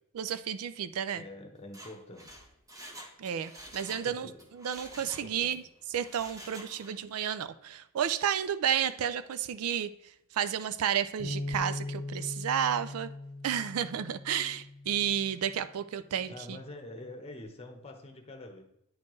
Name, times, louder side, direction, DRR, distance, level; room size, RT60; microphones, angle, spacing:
voice 1, 0.1-1.2 3.2-5.6 5.9-13.1 13.4-16.6, right 9 dB, 80° right, 13 dB, 0.4 m, -32 dB
voice 2, 1.1-2.4 3.9-4.5 5.0-5.6 16.3-18.6, left 1 dB, 25° left, 4 dB, 1.0 m, -46 dB
Mechanisms, 1.6-4.1 4.4-5.6 6.0-7.0 7.3-7.4, right 1 dB, 15° right, 0.9 m, -48 dB
Bass guitar, 11.2-15.6 16.3-17.4, left 2 dB, 55° left, 0.7 m, -41 dB
9.6 x 4.3 x 3.1 m, 0.80 s
head